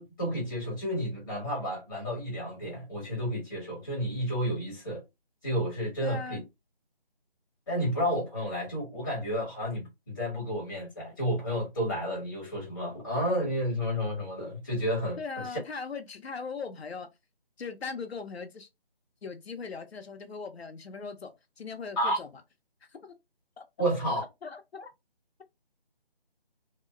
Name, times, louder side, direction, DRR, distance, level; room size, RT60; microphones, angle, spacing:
voice 1, 0.0-5.0 5.4-6.4 7.7-15.6 22.0-22.2 23.8-24.2, equal, 20° left, 1.2 m, -31 dB
voice 2, 6.0-6.4 15.2-17.1 17.6-18.7 19.2-21.3 21.6-22.3 22.9-23.1 23.6-23.7 24.1-24.9, left 5 dB, 85° left, 0.6 m, -39 dB
2.8 x 2.0 x 2.3 m
figure-of-eight pair, 165°, 31 cm